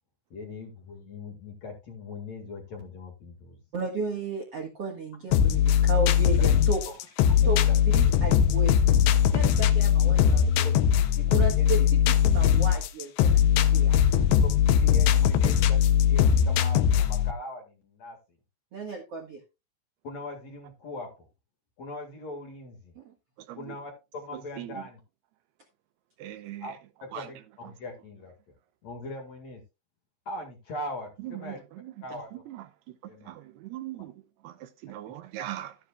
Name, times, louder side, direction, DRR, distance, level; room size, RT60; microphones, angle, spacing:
voice 1, 0.3-3.6 10.0-10.1 10.6-10.7 11.2-11.3 11.6-11.9 12.7-12.8 14.1-18.2 20.0-21.3 21.8-22.9 23.6-25.0 26.6-28.5 28.8-29.6 30.3-31.6 32.0-32.4 33.1-33.3, left 2 dB, 45° left, 2.7 m, -41 dB
voice 2, 3.7-6.8 7.4-7.6 7.9-9.0 9.3-10.7 11.3-11.8 12.2-13.4 13.7-14.0 18.7-19.4 22.9-23.1, right 3 dB, 55° right, 1.8 m, -33 dB
sound 1, 5.3-17.3, left 9 dB, 85° left, 3.0 m, -21 dB
voice 3, 26.2-26.6 27.1-27.2 32.5-32.6 33.3-34.1 34.4-34.5 34.8-35.7, right 13 dB, 80° right, 2.6 m, -39 dB
13.0 x 9.9 x 2.4 m
omnidirectional pair, 4.9 m